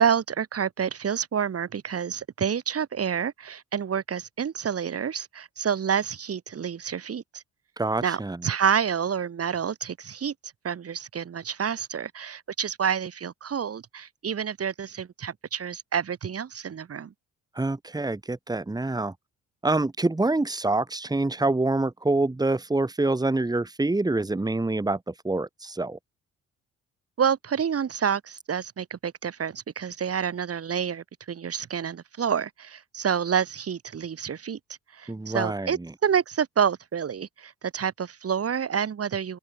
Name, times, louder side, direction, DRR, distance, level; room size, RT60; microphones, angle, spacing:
voice 1, 0.0-7.4 8.0-10.3 10.6-17.1 27.2-34.6 34.9-39.4, right 7 dB, 50° right, 6.9 m, -28 dB
voice 2, 7.8-8.4 17.6-19.1 19.6-26.0 35.1-35.9, right 2 dB, 15° right, 2.4 m, -26 dB
open air
cardioid pair, 90°, 30 cm